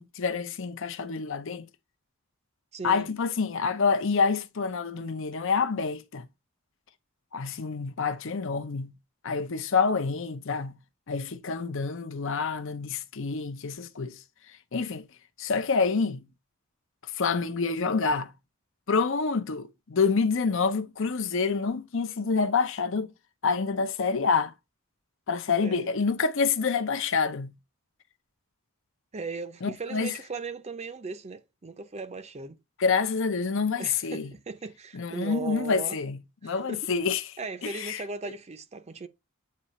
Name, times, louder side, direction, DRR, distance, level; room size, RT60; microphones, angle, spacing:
voice 1, 0.0-1.7 2.8-6.3 7.3-8.9 9.2-10.8 11.1-14.2 14.7-15.1 15.4-16.3 17.2-18.3 18.9-23.1 23.4-24.5 25.3-27.5 29.6-30.1 32.8-34.3 34.9-37.2 37.6-38.0, left 5 dB, 65° left, 0.7 m, -27 dB
voice 2, 2.7-3.1 25.6-26.0 29.1-32.6 33.8-36.0 36.4-36.9 37.4-39.1, right 4 dB, 30° right, 0.5 m, -38 dB
8.5 x 2.8 x 4.1 m
head